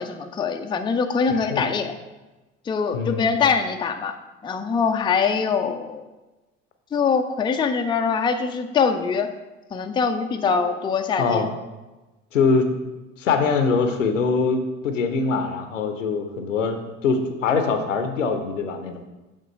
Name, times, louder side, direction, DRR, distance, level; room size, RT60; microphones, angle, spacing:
voice 1, 0.0-1.9 2.7-4.2 4.4-6.0 6.9-9.3 9.7-11.5, left 5 dB, 15° left, 6 dB, 0.4 m, -23 dB
voice 2, 1.3-1.6 2.9-3.3 10.4-10.7 11.2-11.5 12.3-12.7 13.2-19.0, left 4 dB, 80° left, 7 dB, 0.7 m, -23 dB
7.4 x 3.7 x 5.0 m, 1.1 s
figure-of-eight pair, 55°, 37 cm